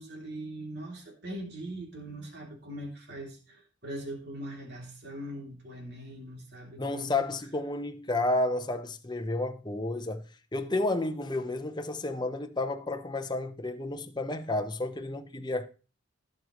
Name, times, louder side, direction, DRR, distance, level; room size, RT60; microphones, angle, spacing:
voice 1, 0.0-7.2, right 1 dB, 55° right, 3.1 m, -41 dB
voice 2, 6.8-10.2 10.5-15.7, left 2 dB, 20° left, 0.9 m, -31 dB
16.0 x 6.5 x 3.1 m
head